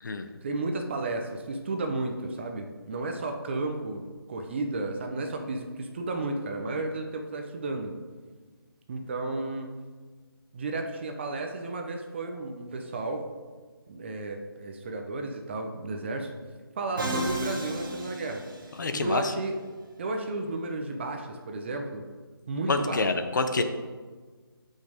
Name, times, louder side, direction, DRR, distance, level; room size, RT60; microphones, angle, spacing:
voice 1, 0.4-4.0 4.3-7.9 8.9-9.7 10.5-13.2 13.9-16.3 16.8-18.4 18.9-19.6 20.0-22.0 22.5-23.0, right 2 dB, 30° right, 4 dB, 0.8 m, -33 dB
Musical instrument, 17.0-19.1, right 1 dB, 60° right, 1.5 m, -33 dB
voice 2, 18.8-19.3 22.7-23.6, left 3 dB, 50° left, 8 dB, 0.8 m, -27 dB
13.0 x 5.4 x 3.6 m, 1.4 s
figure-of-eight pair, 165°, 13 cm